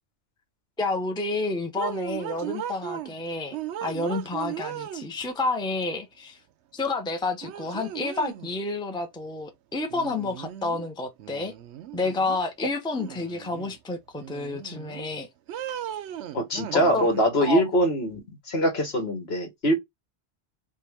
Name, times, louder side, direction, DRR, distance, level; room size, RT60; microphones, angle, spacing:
voice 1, 0.8-6.4 6.7-11.5 11.9-15.3 16.7-17.1 17.4-17.6, left 3 dB, 5° left, 0.7 m, -30 dB
sound 1, 1.8-3.1 3.5-5.4 6.8-6.9 7.4-8.5 9.9-10.9 11.2-12.4 12.9-13.8 14.2-15.1 15.5-17.3, right 11 dB, 80° right, 0.9 m, -37 dB
voice 2, 16.3-18.2 18.5-19.7, equal, 65° left, 1.7 m, -23 dB
5.4 x 2.5 x 3.4 m
omnidirectional pair, 1.1 m